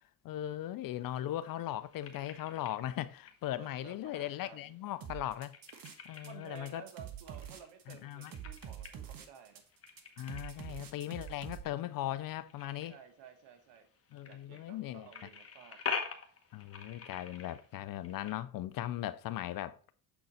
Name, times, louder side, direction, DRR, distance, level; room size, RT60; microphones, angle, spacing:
voice 1, 0.2-5.5 6.0-6.8 7.9-8.3 10.2-12.9 14.1-15.1 16.5-19.8, left 13 dB, 50° left, 0.5 m, -38 dB
sound 1, 0.8-18.4, left 6 dB, 30° left, 1.2 m, -47 dB
voice 2, 3.6-4.7 6.1-9.6 12.9-13.9 14.2-15.8, right 7 dB, 65° right, 1.4 m, -54 dB
sound 2, 5.0-6.3 6.6-11.6, right 9 dB, 50° right, 1.2 m, -46 dB
6.9 x 3.9 x 4.2 m
supercardioid pair, 75°, 45 cm